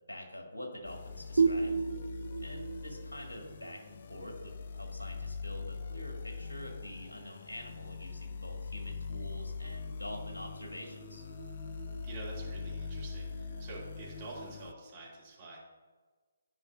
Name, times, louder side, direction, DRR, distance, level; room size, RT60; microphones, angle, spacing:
voice 1, 0.1-1.8 2.4-11.3, left 1 dB, 65° left, 1 dB, 1.7 m, -46 dB
sound 1, 0.9-14.7, left 4 dB, 45° left, 0.3 m, -42 dB
sound 2, 1.4-4.8, right 5 dB, 60° right, 0.4 m, -32 dB
sound 3, 9.7-14.6, right 3 dB, 5° right, 2.2 m, -52 dB
voice 2, 12.0-15.6, right 3 dB, 30° right, -5 dB, 2.4 m, -47 dB
12.5 x 5.2 x 2.5 m, 1.4 s
figure-of-eight pair, 140°, 0 cm